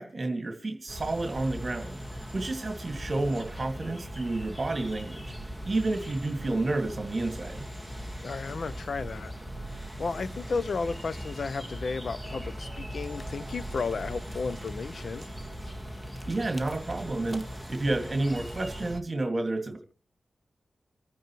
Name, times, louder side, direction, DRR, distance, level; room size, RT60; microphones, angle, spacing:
voice 1, 0.0-5.3 5.6-7.7 16.3-17.4 17.7-19.8, right 2 dB, 40° right, 2.1 m, -30 dB
sound 1, 0.9-19.0, equal, 5° left, 1.6 m, -39 dB
voice 2, 8.2-9.3 10.0-15.3, left 4 dB, 65° left, 0.6 m, -33 dB
27.5 x 9.3 x 3.1 m
cardioid pair, 65°, 0 cm